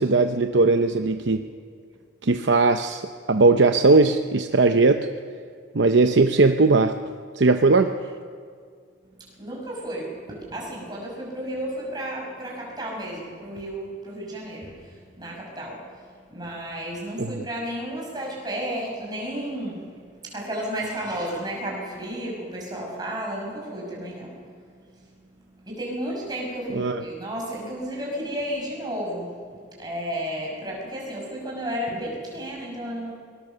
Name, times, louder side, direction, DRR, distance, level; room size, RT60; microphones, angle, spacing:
voice 1, 0.0-1.5 2.2-3.0 3.3-5.1 5.7-7.0 7.4-7.9 17.2-17.3 26.7-27.0, right 3 dB, 75° right, 7 dB, 0.8 m, -19 dB
voice 2, 9.0-25.1 25.5-33.1, equal, 20° right, -2 dB, 5.7 m, -33 dB
22.0 x 20.0 x 6.9 m, 2.1 s
head